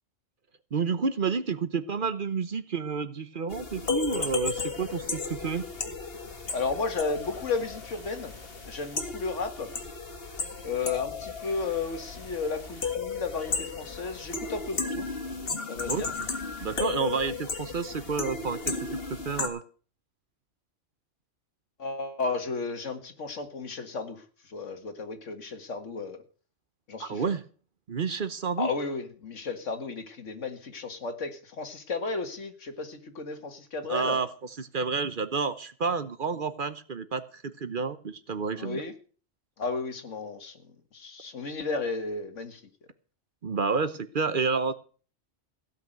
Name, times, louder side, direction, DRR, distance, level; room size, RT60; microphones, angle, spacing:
voice 1, 0.7-5.6 15.9-16.0 16.6-19.6 27.0-27.4 27.9-28.7 33.9-34.3 34.6-38.8 43.4-44.7, right 5 dB, 50° right, 12 dB, 1.0 m, -30 dB
sound 1, 3.5-19.5, left 4 dB, 50° left, 2.0 m, -35 dB
voice 2, 6.5-8.3 8.6-9.7 10.6-15.2 15.7-16.1 21.8-26.2 26.9-27.3 28.6-34.2 38.6-38.9 39.6-42.6, left 4 dB, 85° left, 8 dB, 2.0 m, -33 dB
16.0 x 5.9 x 9.0 m, 0.41 s
omnidirectional pair, 1.2 m